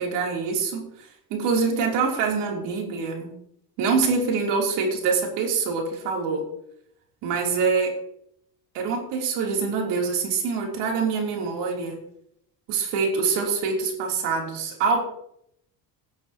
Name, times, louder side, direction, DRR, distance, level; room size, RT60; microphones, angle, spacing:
voice 1, 0.0-3.4 3.8-6.5 7.2-8.0 8.7-12.0 12.7-15.0, right 5 dB, 85° right, 1 dB, 3.4 m, -25 dB
18.0 x 8.7 x 3.0 m, 0.74 s
cardioid pair, 105°, 41 cm